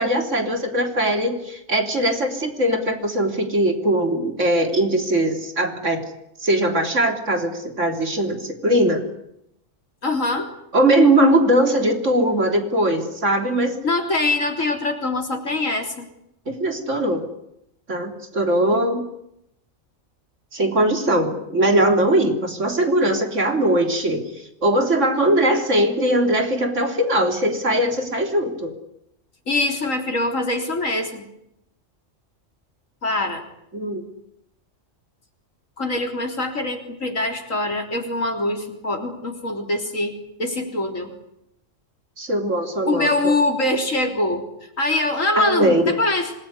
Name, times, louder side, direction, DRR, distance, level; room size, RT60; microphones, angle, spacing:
voice 1, 0.0-6.0 6.4-9.0 10.7-13.8 16.5-17.2 17.9-19.0 20.5-24.3 24.6-28.7 33.7-34.0 42.2-43.3 45.4-45.9, right 1 dB, 70° right, 5 dB, 3.9 m, -20 dB
voice 2, 10.0-10.5 13.8-16.1 29.5-31.2 33.0-33.4 35.8-41.1 42.9-46.3, left 2 dB, 85° left, 4 dB, 4.0 m, -23 dB
26.0 x 20.0 x 9.8 m, 0.80 s
omnidirectional pair, 1.3 m